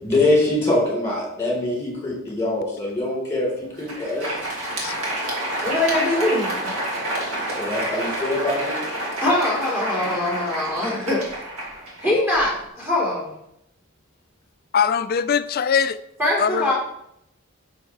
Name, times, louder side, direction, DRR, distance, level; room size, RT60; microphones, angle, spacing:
voice 1, 0.0-4.3 7.6-8.8, left 2 dB, 15° left, -4 dB, 3.6 m, -23 dB
Crowd, 3.6-12.6, right 1 dB, 65° right, 2.4 m, -29 dB
voice 2, 5.6-6.5 9.2-11.4 12.0-13.3 16.2-16.7, left 1 dB, 10° right, -5 dB, 3.6 m, -22 dB
voice 3, 14.7-16.0 16.4-16.7, left 7 dB, 45° left, 13 dB, 0.3 m, -21 dB
10.0 x 6.4 x 3.2 m, 0.78 s
head